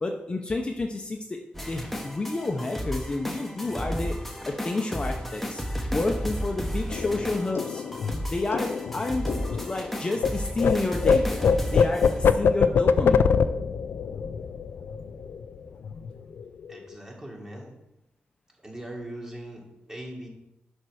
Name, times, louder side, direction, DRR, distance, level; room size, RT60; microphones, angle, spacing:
voice 1, 0.0-1.4 1.6-4.1 4.5-5.6 5.9-7.8 8.3-11.4 11.7-13.3, left 2 dB, 25° left, 2 dB, 0.7 m, -30 dB
sound 1, 1.5-12.5, equal, 5° left, 0.9 m, -33 dB
sound 2, 6.9-10.3 10.6-15.6 15.8-16.1 16.4-16.9, left 6 dB, 90° left, 0.4 m, -24 dB
voice 2, 16.7-17.7 18.6-20.3, right 1 dB, 15° right, -1 dB, 1.9 m, -40 dB
11.0 x 4.4 x 6.4 m, 0.87 s
wide cardioid pair, 160°, 4 cm